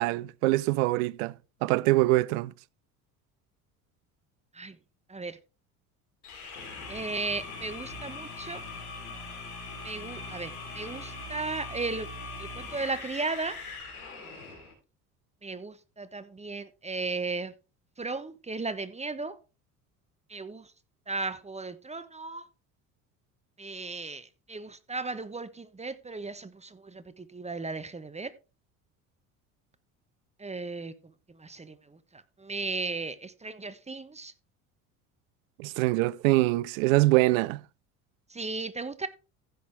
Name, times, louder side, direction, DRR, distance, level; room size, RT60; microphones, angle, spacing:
voice 1, 0.0-1.3 1.6-2.5 35.6-37.6, right 20 dB, 70° right, 0.6 m, -24 dB
sound 1, 6.2-14.7, left 3 dB, 90° left, 3.6 m, -41 dB
voice 2, 6.9-8.6 9.8-12.1 12.4-13.6 15.4-17.5 18.0-19.4 20.3-20.6 21.1-22.5 23.6-28.3 30.4-30.9 31.4-31.8 32.4-34.3 38.3-39.1, right 3 dB, 15° right, 1.0 m, -35 dB
15.0 x 6.3 x 3.4 m
hypercardioid pair, 65°, 43 cm